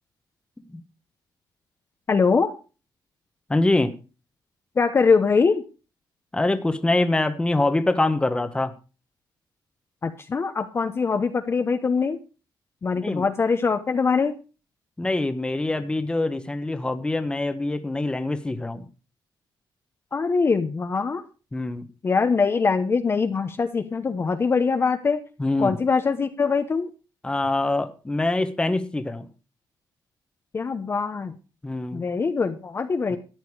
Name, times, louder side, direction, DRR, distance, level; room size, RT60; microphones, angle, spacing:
voice 1, 2.1-2.5 4.8-5.6 10.0-12.2 12.8-14.3 20.1-21.2 22.0-25.2 25.6-26.9 30.5-31.3 31.9-33.2, left 5 dB, 30° left, 7 dB, 0.9 m, -22 dB
voice 2, 3.5-3.9 6.3-8.7 13.0-13.3 15.0-18.9 21.5-21.9 25.4-25.8 27.2-29.3 31.6-32.0 33.1-33.2, left 2 dB, 10° left, 10 dB, 1.1 m, -24 dB
13.5 x 9.1 x 4.7 m, 0.34 s
cardioid pair, 125°, 8 cm